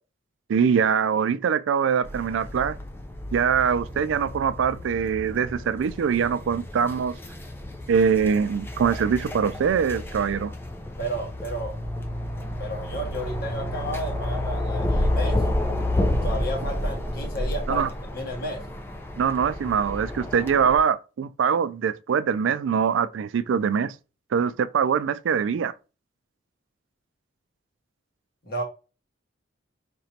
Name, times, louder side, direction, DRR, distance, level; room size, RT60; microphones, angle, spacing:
voice 1, 0.5-2.8 3.3-7.1 7.9-10.5 17.7-17.9 19.2-23.9 24.3-25.7, right 7 dB, 75° right, 0.3 m, -23 dB
sound 1, 2.0-20.8, left 1 dB, 10° left, 0.4 m, -30 dB
voice 2, 11.0-11.7 12.6-15.4 16.2-17.8 18.1-18.6 28.4-28.6, equal, 50° left, 1.4 m, -32 dB
4.5 x 2.9 x 2.7 m
head